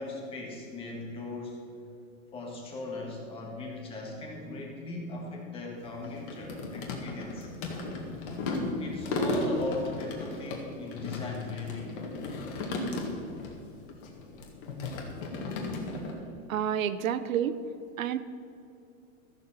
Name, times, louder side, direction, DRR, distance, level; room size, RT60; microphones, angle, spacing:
voice 1, 0.0-1.6 2.3-7.5 8.8-12.0, left 2 dB, 15° left, 0 dB, 1.5 m, -38 dB
sound 1, 5.8-13.5 13.8-16.1, left 2 dB, 40° left, 1.9 m, -35 dB
voice 2, 16.5-17.6 18.0-18.2, right 9 dB, 85° right, 13 dB, 0.8 m, -29 dB
14.0 x 7.2 x 5.9 m, 2.7 s
supercardioid pair, 170°, 40 cm